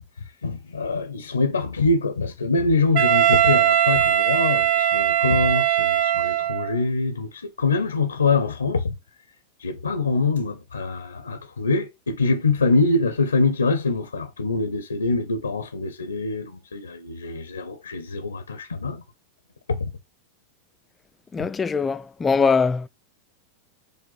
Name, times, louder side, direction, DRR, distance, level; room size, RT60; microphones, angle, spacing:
voice 1, 0.4-8.9 9.6-19.0 19.7-19.9, left 3 dB, 90° left, 0.5 m, -24 dB
Wind instrument woodwind instrument, 2.9-6.8, right 11 dB, 55° right, 0.4 m, -20 dB
voice 2, 21.3-22.9, left 5 dB, 20° left, 0.3 m, -22 dB
4.9 x 2.2 x 3.9 m
hypercardioid pair, 95°, 0 cm